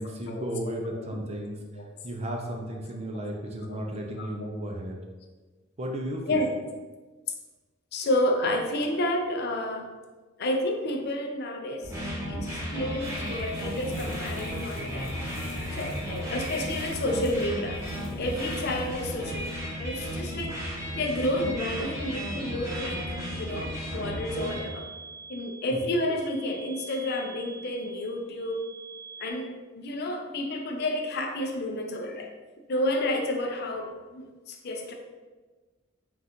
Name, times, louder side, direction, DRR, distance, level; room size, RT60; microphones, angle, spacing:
voice 1, 0.0-1.6 2.0-5.0 5.8-6.4 25.7-25.8, equal, 30° right, 1 dB, 0.5 m, -34 dB
voice 2, 7.9-9.9 10.4-11.9 12.3-15.2 15.7-17.8 18.2-20.6 20.9-24.9 25.3-28.6 29.2-32.3 32.7-34.9, left 1 dB, 50° left, 3 dB, 0.5 m, -30 dB
sound 1, 11.8-24.6, equal, 15° right, 0.9 m, -34 dB
sound 2, 13.0-19.6, left 1 dB, 75° left, 1.0 m, -44 dB
sound 3, 22.7-29.3, right 5 dB, 75° right, 1.1 m, -46 dB
3.8 x 2.4 x 4.2 m, 1.3 s
head